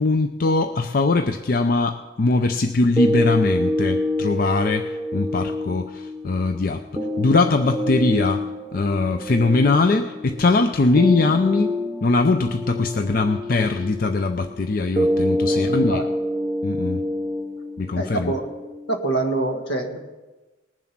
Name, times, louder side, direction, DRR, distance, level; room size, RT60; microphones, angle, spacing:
voice 1, 0.0-6.8 7.2-8.4 8.7-11.7 12.0-16.1 16.6-17.0 17.8-18.3, left 3 dB, 50° left, 8 dB, 0.5 m, -21 dB
sound 1, 3.0-19.0, left 1 dB, 10° right, 0.7 m, -27 dB
voice 2, 15.5-16.0 17.9-18.5 18.9-20.0, right 2 dB, 75° left, 4 dB, 1.8 m, -26 dB
19.5 x 7.4 x 5.9 m, 1.2 s
head